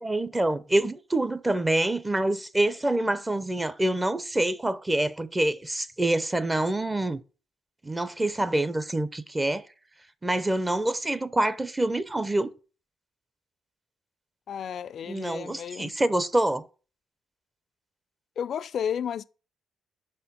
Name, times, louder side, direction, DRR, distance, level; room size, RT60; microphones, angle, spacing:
voice 1, 0.0-7.2 7.8-9.7 10.2-12.5 15.1-16.6, right 1 dB, 15° right, 0.5 m, -26 dB
voice 2, 14.5-15.9 18.4-19.2, left 8 dB, 60° left, 0.3 m, -32 dB
5.6 x 4.4 x 5.4 m
cardioid pair, 90°, 0 cm